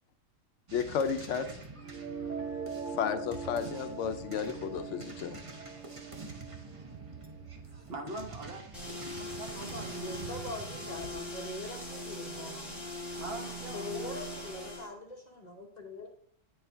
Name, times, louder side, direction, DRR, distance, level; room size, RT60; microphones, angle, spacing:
voice 1, 0.7-1.5 2.9-5.4, left 7 dB, 70° left, 8 dB, 0.9 m, -32 dB
sound 1, 0.7-11.2, right 3 dB, 30° right, 0.7 m, -46 dB
sound 2, 1.8-7.7, right 5 dB, 65° right, 1.4 m, -42 dB
voice 2, 7.9-8.6 9.2-10.1 13.1-14.2, right 2 dB, 50° right, 3 dB, 1.2 m, -43 dB
sound 3, 8.7-14.9, equal, ahead, 1.3 m, -40 dB
voice 3, 9.5-12.8 13.7-16.1, left 2 dB, 40° left, 1 dB, 0.8 m, -43 dB
8.8 x 4.5 x 3.4 m, 0.69 s
omnidirectional pair, 1.4 m